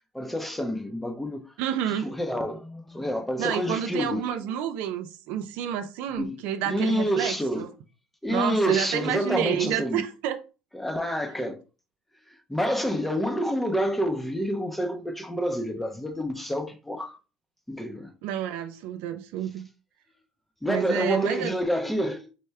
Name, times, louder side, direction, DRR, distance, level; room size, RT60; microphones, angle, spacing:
voice 1, 0.1-1.5 2.0-4.5 6.2-6.4 6.7-7.7 8.2-10.0 10.7-11.6 12.5-17.2 17.7-18.1 20.6-22.3, equal, 5° left, 0.6 m, -28 dB
voice 2, 1.6-2.1 3.4-7.7 8.3-10.4 18.2-19.7 20.7-21.5, right 10 dB, 70° right, 0.5 m, -29 dB
4.5 x 2.1 x 3.2 m
supercardioid pair, 90°, 3 cm